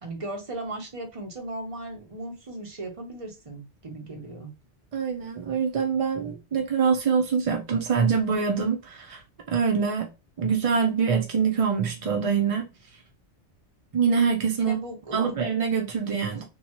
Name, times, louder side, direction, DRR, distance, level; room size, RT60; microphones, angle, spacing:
voice 1, 0.0-4.5 14.6-15.3 16.3-16.4, right 2 dB, 35° right, 0.7 m, -37 dB
voice 2, 4.9-9.2 9.5-10.1 10.4-12.6 13.9-14.8 15.1-16.4, right 6 dB, 65° right, 0.3 m, -24 dB
2.8 x 2.3 x 2.6 m
omnidirectional pair, 1.2 m